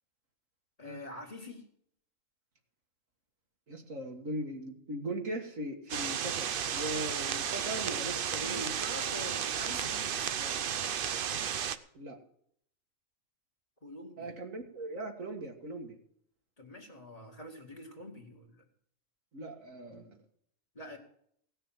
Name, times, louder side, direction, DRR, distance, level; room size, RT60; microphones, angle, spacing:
voice 1, 0.8-1.6 8.4-10.3 13.8-14.4 16.6-18.6 20.8-21.0, left 1 dB, 30° left, 2 dB, 2.1 m, -46 dB
voice 2, 3.7-6.5 6.7-8.7 10.4-10.5 11.9-12.2 14.2-16.0 19.3-20.2, right 1 dB, 75° right, 3 dB, 2.0 m, -39 dB
sound 1, 5.9-11.8, right 8 dB, 55° right, 0.7 m, -33 dB
17.0 x 6.7 x 7.4 m, 0.66 s
omnidirectional pair, 1.4 m